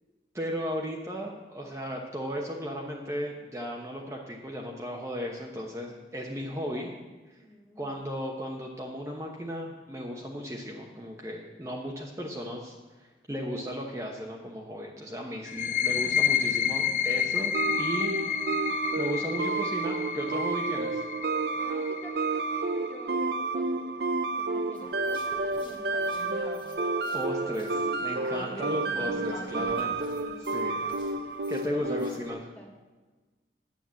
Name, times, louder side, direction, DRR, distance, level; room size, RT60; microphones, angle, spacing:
voice 1, 0.3-6.9 7.8-18.1 19.0-21.0 27.1-29.9 30.5-30.8 31.5-32.4, equal, 15° right, -1 dB, 1.0 m, -35 dB
voice 2, 6.4-8.0 15.7-15.8 21.6-26.3 28.1-28.6 29.0-31.3 31.7-32.7, equal, 10° left, 0 dB, 1.6 m, -49 dB
sound 1, 15.5-22.9, left 8 dB, 45° left, 0.5 m, -30 dB
sound 2, 17.5-32.3, right 3 dB, 65° right, 0.7 m, -30 dB
sound 3, 24.8-32.2, left 1 dB, 25° left, 1.5 m, -46 dB
9.8 x 8.7 x 7.6 m, 1.3 s
head